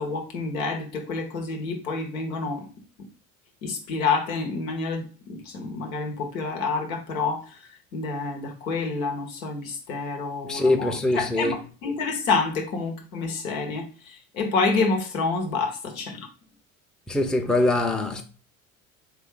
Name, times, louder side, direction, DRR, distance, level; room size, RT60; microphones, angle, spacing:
voice 1, 0.0-2.7 3.6-7.5 7.9-13.9 14.3-16.3, left 4 dB, 80° left, 1.0 m, -28 dB
voice 2, 10.5-11.5 17.1-18.2, left 2 dB, ahead, 0.5 m, -23 dB
3.8 x 3.5 x 3.6 m
figure-of-eight pair, 65°, 41 cm